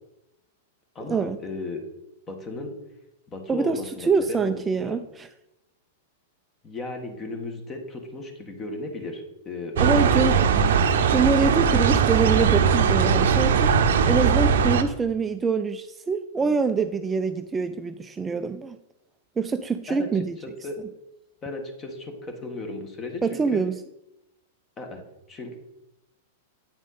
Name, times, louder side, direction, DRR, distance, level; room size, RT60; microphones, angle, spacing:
voice 1, 0.9-1.8 2.3-2.8 3.3-4.9 6.6-10.4 11.7-11.9 19.9-20.2 20.6-20.8 21.4-23.6 24.8-25.0 25.3-25.6, left 2 dB, 25° left, 4 dB, 1.6 m, -35 dB
voice 2, 3.5-5.3 9.8-10.4 11.1-18.8 19.4-20.4 23.2-23.8, right 5 dB, 15° right, 9 dB, 0.4 m, -25 dB
sound 1, 9.8-14.8, right 6 dB, 70° right, 0.7 m, -20 dB
8.7 x 4.9 x 4.1 m, 0.89 s
hypercardioid pair, 105°, 0 cm